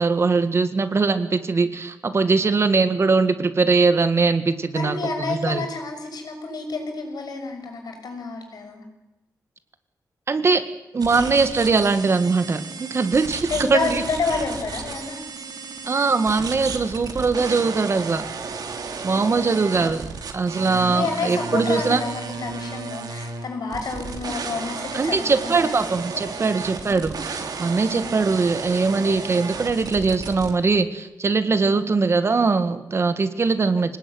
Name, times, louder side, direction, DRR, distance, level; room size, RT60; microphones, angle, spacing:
voice 1, 0.0-5.0 5.3-5.6 10.3-10.6 10.9-14.0 15.9-18.2 19.0-20.0 20.3-22.0 24.9-34.0, right 4 dB, 40° right, 10 dB, 1.7 m, -21 dB
voice 2, 4.7-8.8 13.5-15.2 19.1-19.9 20.7-25.8 26.2-27.0 27.9-28.1 31.7-31.9, left 4 dB, 70° left, 4 dB, 6.3 m, -30 dB
sound 1, 11.0-30.5, right 4 dB, 70° right, 3.3 m, -33 dB
25.5 x 19.0 x 9.6 m, 0.99 s
wide cardioid pair, 165°, 7 cm